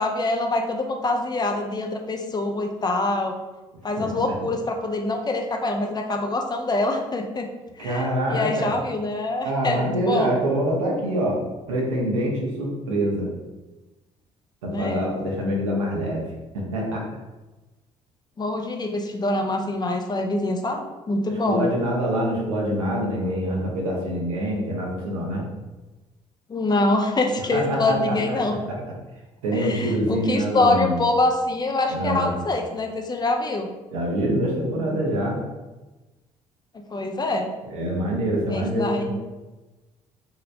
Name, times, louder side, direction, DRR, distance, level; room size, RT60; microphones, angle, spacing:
voice 1, 0.0-3.3 3.8-7.5 7.8-10.3 14.7-15.1 18.4-21.7 26.5-28.6 29.5-33.7 36.9-37.5 38.5-39.2, left 2 dB, 25° left, 3 dB, 0.5 m, -25 dB
voice 2, 4.0-4.3 7.8-8.7 9.4-11.4 11.7-13.3 14.6-16.3 16.5-17.0 21.3-25.5 27.5-28.8 29.4-31.0 31.9-32.3 33.9-35.4 37.7-39.2, right 1 dB, 75° right, -2 dB, 0.7 m, -25 dB
3.0 x 2.8 x 2.5 m, 1.1 s
figure-of-eight pair, 50°, 17 cm